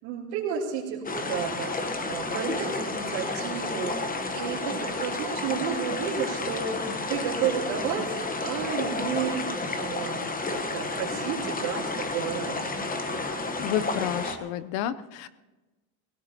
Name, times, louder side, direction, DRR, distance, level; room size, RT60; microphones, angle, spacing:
voice 1, 0.0-3.9 4.3-9.4 9.7-10.2 10.5-12.7, right 7 dB, 80° right, -8 dB, 3.4 m, -32 dB
sound 1, 1.0-14.4, left 3 dB, 20° left, 1.2 m, -31 dB
voice 2, 13.6-15.3, left 10 dB, 70° left, 14 dB, 0.8 m, -30 dB
22.0 x 17.0 x 2.9 m, 1.2 s
cardioid pair, 125°, 43 cm